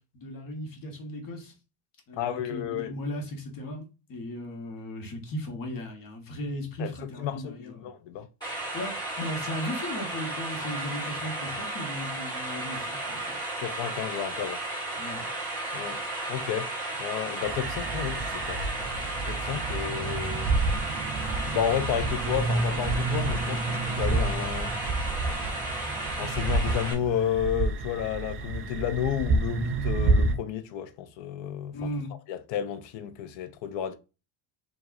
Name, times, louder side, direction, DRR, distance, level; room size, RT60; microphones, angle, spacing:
voice 1, 0.1-1.5 2.1-7.9 8.5-13.4 15.0-15.3 31.7-32.1, left 1 dB, 45° left, 1.3 m, -37 dB
voice 2, 2.1-3.0 6.8-8.3 13.6-14.6 15.7-16.0 16.3-16.7 17.0-18.6 19.3-20.5 21.5-24.7 26.2-31.9 32.3-34.0, left 9 dB, 65° left, 0.7 m, -32 dB
sound 1, 8.4-26.9, right 2 dB, 10° left, 2.3 m, -34 dB
sound 2, 17.4-30.3, right 3 dB, 30° right, 0.5 m, -29 dB
4.7 x 2.7 x 2.6 m
cardioid pair, 130°, 47 cm